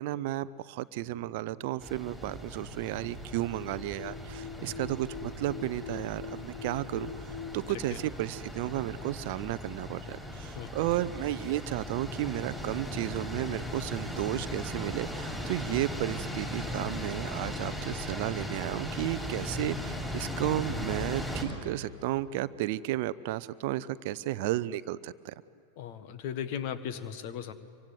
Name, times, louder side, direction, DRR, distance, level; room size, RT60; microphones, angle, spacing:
voice 1, 0.0-25.3, right 15 dB, 50° right, 17 dB, 0.6 m, -33 dB
sound 1, 0.9-7.7, left 6 dB, 80° left, 5.2 m, -45 dB
sound 2, 1.8-21.4, left 1 dB, 5° left, 6.7 m, -38 dB
voice 2, 25.8-27.5, left 9 dB, 45° left, 12 dB, 1.6 m, -37 dB
26.0 x 24.0 x 9.4 m, 2.4 s
figure-of-eight pair, 90°, 0 cm